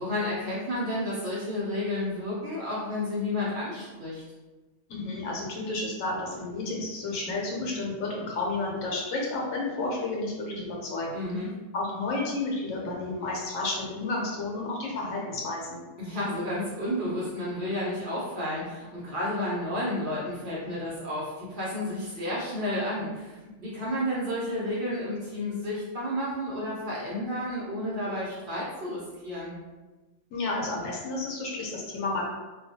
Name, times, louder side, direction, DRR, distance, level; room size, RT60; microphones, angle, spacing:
voice 1, 0.0-4.2 11.1-11.5 16.0-29.5, left 1 dB, 50° right, -7 dB, 0.7 m, -31 dB
voice 2, 4.9-11.2 11.7-15.8 30.3-32.3, left 2 dB, 80° left, -2 dB, 1.1 m, -31 dB
2.3 x 2.3 x 2.7 m, 1.2 s
omnidirectional pair, 1.3 m